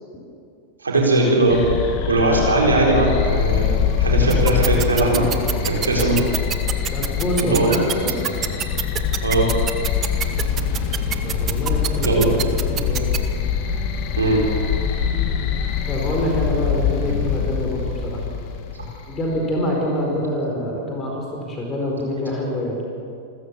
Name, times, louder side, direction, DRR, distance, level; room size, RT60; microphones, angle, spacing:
voice 1, 0.8-1.6 2.1-3.7 4.0-5.3 5.6-6.2 7.4-7.8 9.2-9.5 12.0-12.4 14.2-14.4, right 2 dB, 75° right, -2 dB, 4.3 m, -19 dB
sound 1, 1.5-19.4, left 7 dB, 45° left, 2.0 m, -24 dB
sound 2, 4.3-13.2, right 11 dB, 30° right, 1.1 m, -25 dB
voice 2, 6.9-8.1 11.2-13.1 15.9-18.3 19.1-22.8, left 1 dB, 20° left, 0 dB, 4.7 m, -25 dB
29.0 x 14.5 x 7.1 m, 2.5 s
figure-of-eight pair, 90°, 0 cm